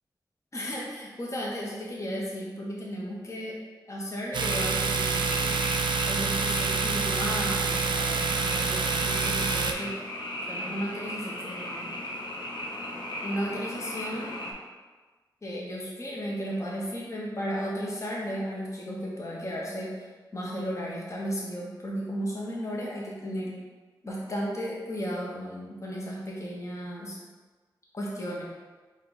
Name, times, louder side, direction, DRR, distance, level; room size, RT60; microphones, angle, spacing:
voice 1, 0.5-3.6 3.9-5.6 6.0-9.9 10.5-11.9 13.2-14.4 15.4-23.6 24.0-27.2 27.9-28.4, equal, 40° left, -4 dB, 1.0 m, -34 dB
Domestic sounds home sounds, 4.3-9.7, right 5 dB, 80° right, 0.3 m, -27 dB
Frog, 4.4-14.5, left 1 dB, 75° left, 0.8 m, -37 dB
4.6 x 2.5 x 3.9 m, 1.3 s
cardioid pair, 55°, 8 cm